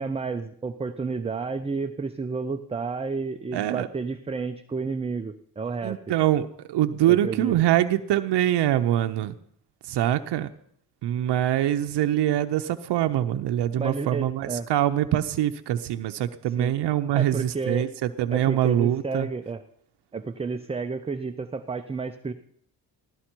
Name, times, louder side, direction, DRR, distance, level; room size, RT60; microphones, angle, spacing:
voice 1, 0.0-6.0 7.1-7.5 13.8-14.7 16.6-16.7 17.1-17.9 18.3-19.6 20.1-22.3, right 4 dB, 15° right, 8 dB, 0.5 m, -31 dB
voice 2, 3.5-3.9 5.8-9.3 9.8-10.5 11.0-19.3, right 12 dB, 75° right, 8 dB, 0.7 m, -24 dB
15.5 x 12.5 x 4.5 m, 0.68 s
cardioid pair, 135°, 41 cm